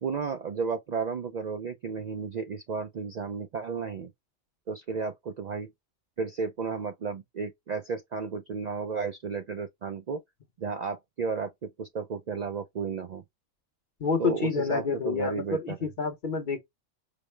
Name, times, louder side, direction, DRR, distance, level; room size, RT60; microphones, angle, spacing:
voice 1, 0.0-4.1 4.7-5.7 6.2-10.2 10.6-13.2 14.2-15.8, right 5 dB, 90° right, 0.3 m, -33 dB
voice 2, 14.0-16.6, left 5 dB, 45° left, 0.8 m, -28 dB
5.0 x 2.1 x 3.1 m
omnidirectional pair, 1.4 m